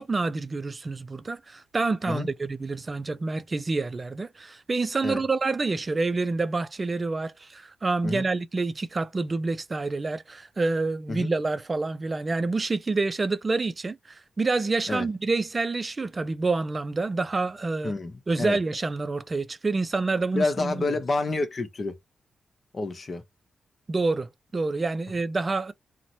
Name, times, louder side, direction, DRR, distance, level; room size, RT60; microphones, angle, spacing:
voice 1, 0.0-17.9 18.3-20.9 23.9-25.7, right 3 dB, 40° right, 0.4 m, -28 dB
voice 2, 17.8-18.6 20.3-21.9 22.7-23.2, left 3 dB, 50° left, 0.7 m, -29 dB
2.9 x 2.1 x 2.6 m
supercardioid pair, 45°, 0 cm